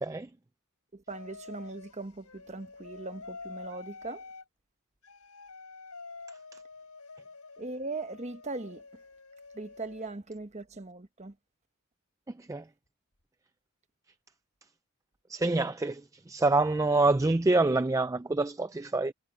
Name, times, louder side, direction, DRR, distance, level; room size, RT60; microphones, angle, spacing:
voice 1, 0.9-4.2 7.6-8.8 9.5-11.3, right 3 dB, 30° right, 1.2 m, -39 dB
sound 1, 1.1-4.4 5.0-10.1, left 4 dB, 85° left, 6.4 m, -48 dB
voice 2, 15.3-16.0 16.3-19.1, right 2 dB, 15° right, 0.3 m, -26 dB
head